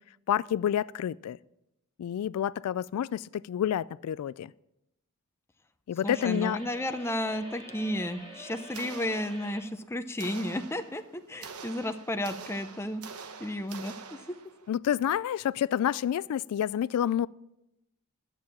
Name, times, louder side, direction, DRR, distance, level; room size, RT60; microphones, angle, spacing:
voice 1, 0.3-1.4 2.0-4.5 5.9-6.6 14.7-17.3, left 10 dB, 85° left, 18 dB, 0.3 m, -29 dB
voice 2, 6.0-11.0 11.3-13.0 13.4-13.9, left 1 dB, 10° left, 8 dB, 0.6 m, -32 dB
sound 1, 6.0-9.7, equal, 25° right, 2.2 m, -47 dB
sound 2, 8.7-9.8 10.2-14.7, right 5 dB, 85° right, 1.0 m, -45 dB
11.0 x 7.7 x 7.2 m, 0.87 s
head